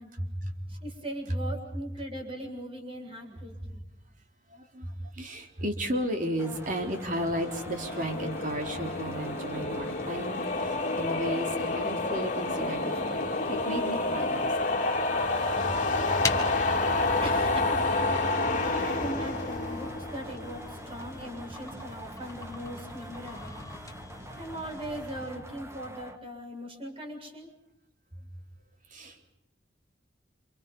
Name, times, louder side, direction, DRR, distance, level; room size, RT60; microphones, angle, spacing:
voice 1, 0.2-0.8 4.5-14.8 18.7-19.0 28.9-29.3, equal, 45° right, 4 dB, 3.8 m, -34 dB
voice 2, 0.7-3.8 15.6-15.7 17.2-17.8 18.6-23.6 24.4-27.5, equal, 30° right, 2 dB, 7.2 m, -40 dB
sound 1, 6.4-26.2, right 1 dB, 15° right, 2.0 m, -46 dB
sound 2, 6.6-20.9, left 2 dB, 45° left, 3.3 m, -29 dB
sound 3, 16.2-25.4, left 3 dB, 20° left, 1.8 m, -41 dB
29.0 x 28.0 x 5.6 m, 0.86 s
head